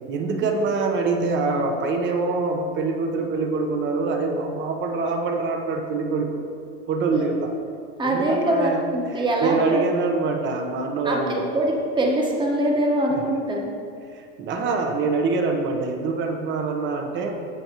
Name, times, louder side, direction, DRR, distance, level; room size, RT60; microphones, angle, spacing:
voice 1, 0.1-6.4 6.9-7.5 8.0-8.8 9.4-11.5 13.1-13.2 14.1-17.3, right 3 dB, 35° right, 4 dB, 1.0 m, -25 dB
voice 2, 8.0-9.8 11.0-13.6, right 1 dB, 15° right, -1 dB, 1.3 m, -23 dB
15.0 x 5.3 x 3.0 m, 2.3 s
supercardioid pair, 135°, 35 cm